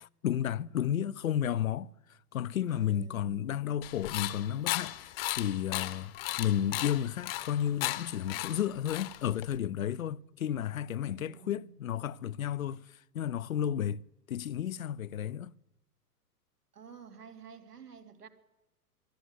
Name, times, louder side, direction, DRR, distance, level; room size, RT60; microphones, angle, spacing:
voice 1, 0.0-14.0 14.3-15.5, left 10 dB, 60° left, 0.7 m, -32 dB
voice 2, 2.7-3.5 11.0-11.8 16.7-18.3, right 6 dB, 70° right, 2.8 m, -51 dB
sound 1, 3.8-9.6, left 17 dB, 35° left, 1.0 m, -36 dB
23.5 x 13.5 x 9.6 m
figure-of-eight pair, 105°, 48 cm